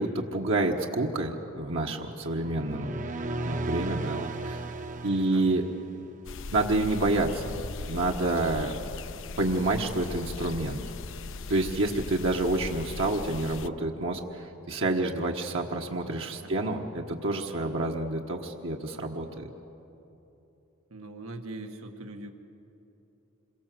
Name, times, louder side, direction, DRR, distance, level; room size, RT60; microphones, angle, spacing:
voice 1, 0.0-3.0 3.4-4.6 5.0-5.6 6.5-7.6 7.9-8.7 9.4-10.8 11.5-19.5, right 2 dB, 65° right, 0 dB, 1.4 m, -28 dB
sound 1, 2.3-6.2, right 2 dB, 40° right, 0.9 m, -35 dB
voice 2, 5.1-5.5 16.4-16.8 20.9-22.3, right 2 dB, 90° right, 4 dB, 1.9 m, -42 dB
sound 2, 6.2-13.7, left 3 dB, 65° left, 0.6 m, -39 dB
27.5 x 23.0 x 7.7 m, 3.0 s
head